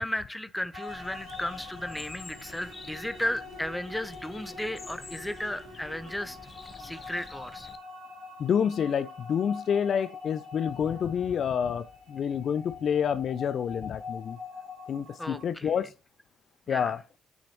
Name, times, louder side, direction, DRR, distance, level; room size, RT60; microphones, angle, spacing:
voice 1, 0.0-6.4 6.8-7.7 15.2-15.7 16.7-16.9, left 1 dB, 10° left, 0.8 m, -34 dB
sound 1, 0.7-15.5, left 3 dB, 75° right, 2.8 m, -44 dB
Bird, 0.9-7.8, left 4 dB, 40° left, 0.9 m, -48 dB
voice 2, 8.4-14.4 14.9-15.9 16.7-17.0, left 8 dB, 55° left, 0.4 m, -28 dB
6.7 x 6.4 x 2.9 m
hypercardioid pair, 45°, 0 cm